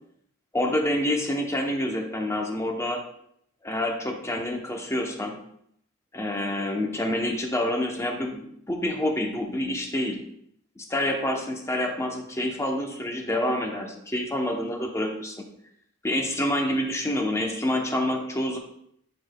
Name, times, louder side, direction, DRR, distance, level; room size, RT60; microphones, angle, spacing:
voice 1, 0.5-3.0 3.6-5.3 6.1-10.2 10.8-15.4 16.0-18.6, left 1 dB, 15° left, 3 dB, 0.8 m, -27 dB
8.2 x 6.9 x 2.3 m, 0.71 s
head